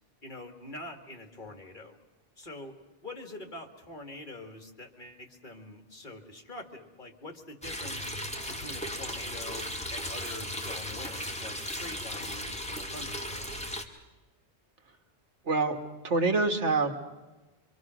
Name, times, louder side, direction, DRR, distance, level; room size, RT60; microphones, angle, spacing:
voice 1, 0.2-2.0 2.4-8.1 8.5-13.6, left 1 dB, 45° left, 5 dB, 2.2 m, -45 dB
sound 1, 7.6-13.8, left 1 dB, 5° left, 1.8 m, -36 dB
sound 2, 8.3-12.9, right 1 dB, 70° right, 4.5 m, -50 dB
voice 2, 15.4-15.8 16.0-17.0, right 3 dB, 90° right, 5 dB, 2.2 m, -26 dB
25.5 x 24.5 x 6.2 m, 1.1 s
omnidirectional pair, 1.2 m